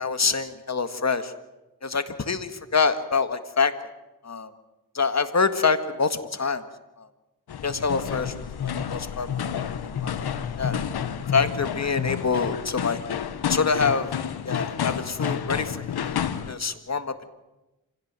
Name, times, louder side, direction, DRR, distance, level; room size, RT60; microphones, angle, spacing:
voice 1, 0.0-1.3 1.8-3.7 4.2-4.5 4.9-6.6 7.0-7.1 7.6-9.3 9.8-10.8 11.3-13.0 13.5-14.1 14.4-17.1, left 5 dB, 45° left, 10 dB, 1.8 m, -26 dB
sound 1, 7.5-16.5, left 8 dB, 90° left, 1.1 m, -30 dB
25.5 x 17.0 x 7.6 m, 1.0 s
cardioid pair, 55°, 37 cm